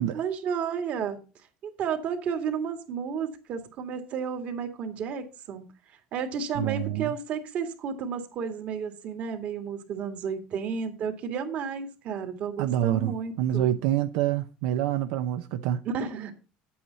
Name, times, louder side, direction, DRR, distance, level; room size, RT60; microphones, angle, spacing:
voice 1, 0.1-13.7 15.8-16.3, right 6 dB, 50° right, 2.0 m, -32 dB
voice 2, 6.6-7.1 12.6-15.8, right 12 dB, 80° right, 0.6 m, -27 dB
9.5 x 8.6 x 4.0 m
cardioid pair, 140°, 3 cm